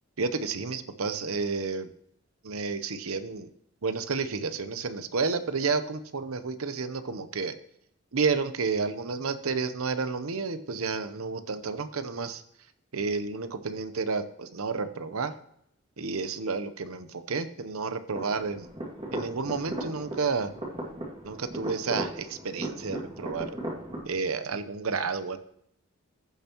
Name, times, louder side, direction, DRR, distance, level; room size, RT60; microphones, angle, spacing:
voice 1, 0.2-1.9 2.4-3.5 3.8-7.5 8.1-12.4 12.9-15.3 16.0-18.7 19.1-20.5 21.2-23.5 24.0-25.4, right 4 dB, 80° right, 11 dB, 0.8 m, -31 dB
sound 1, 18.1-24.0, right 1 dB, 25° right, 2.2 m, -37 dB
15.0 x 7.0 x 3.0 m, 0.72 s
head